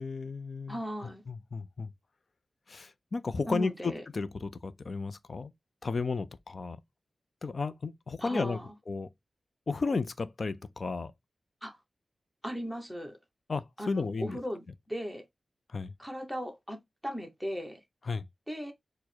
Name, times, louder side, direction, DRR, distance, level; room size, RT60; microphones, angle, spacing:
voice 1, 0.0-0.8 1.3-1.9 2.7-5.5 5.8-6.8 7.4-8.6 8.9-9.1 9.7-11.1 13.5-14.4 15.7-15.9 18.1-18.3, left 4 dB, 50° left, 0.4 m, -33 dB
voice 2, 0.7-1.2 3.5-4.0 8.2-8.7 11.6-11.8 12.4-13.2 13.8-15.2 16.0-16.8 17.0-17.8 18.5-18.7, equal, ahead, 0.9 m, -37 dB
4.5 x 2.1 x 4.2 m
wide cardioid pair, 130°, 0 cm